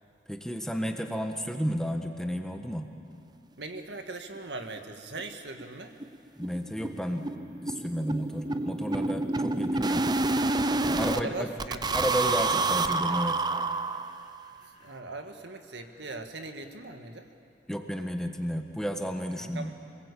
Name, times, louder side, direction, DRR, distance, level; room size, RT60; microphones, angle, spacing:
voice 1, 0.3-2.9 6.4-10.1 10.9-11.5 11.9-13.4 17.7-19.7, equal, 5° left, 4 dB, 1.4 m, -32 dB
voice 2, 3.6-5.9 11.1-12.0 14.8-17.3 19.4-19.8, right 3 dB, 90° right, 5 dB, 1.9 m, -40 dB
sound 1, 4.4-4.5 4.8-4.9 5.2-5.3 5.6-5.7 6.0-11.2 11.6-14.4, right 3 dB, 25° right, 0.6 m, -28 dB
Laughter, 7.5-11.6 11.9-16.3, left 3 dB, 40° left, 3.6 m, -53 dB
27.0 x 20.5 x 8.4 m, 2.5 s
head